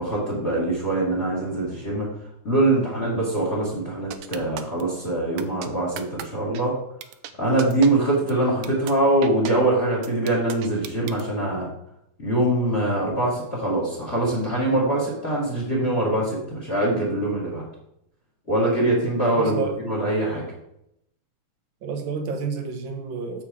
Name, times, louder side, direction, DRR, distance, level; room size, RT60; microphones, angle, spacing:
voice 1, 0.0-2.1 2.4-6.7 7.4-11.7 12.2-17.6 18.5-20.5, right 1 dB, 25° left, -3 dB, 2.1 m, -23 dB
sound 1, 4.1-4.8 5.4-5.7 6.0-6.2 6.5-6.6 7.0-7.3 7.6-7.9 8.3-8.4 8.6-8.9 9.2-9.5 10.0-11.2, right 11 dB, 90° right, 2.0 m, -35 dB
voice 2, 19.3-19.8 21.8-23.4, right 5 dB, 65° right, 6 dB, 1.2 m, -30 dB
7.3 x 5.9 x 4.8 m, 0.78 s
omnidirectional pair, 3.4 m